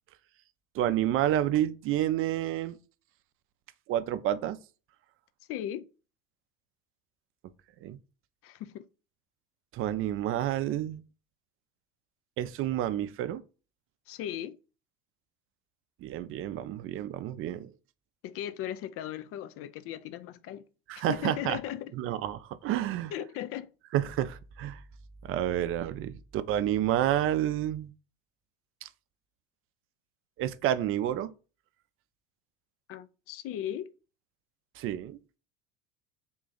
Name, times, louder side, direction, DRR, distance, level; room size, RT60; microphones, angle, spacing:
voice 1, 0.7-2.8 3.9-4.6 7.8-8.0 9.7-11.0 12.4-13.4 16.0-17.7 20.9-21.6 21.9-23.1 23.9-24.8 25.2-27.9 28.8-28.9 30.4-31.3 34.8-35.2, right 12 dB, 45° right, 0.5 m, -29 dB
voice 2, 5.5-5.9 8.4-8.8 14.1-14.6 18.2-20.6 21.0-21.9 23.1-23.7 32.9-33.9, left 11 dB, 50° left, 0.5 m, -37 dB
3.9 x 2.4 x 3.9 m
hypercardioid pair, 75°, 30 cm